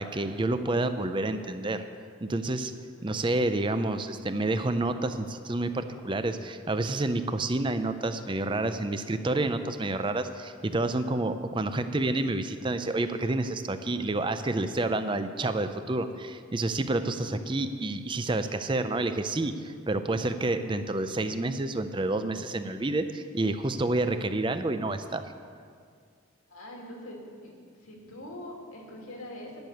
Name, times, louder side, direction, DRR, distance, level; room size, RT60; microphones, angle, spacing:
voice 1, 0.0-1.8 2.2-2.7 3.0-25.2, right 2 dB, 25° right, 9 dB, 0.5 m, -29 dB
voice 2, 2.9-3.2 17.0-17.3 26.5-27.5 27.8-29.6, left 1 dB, 85° left, -1 dB, 2.5 m, -43 dB
10.5 x 6.7 x 9.2 m, 2.1 s
head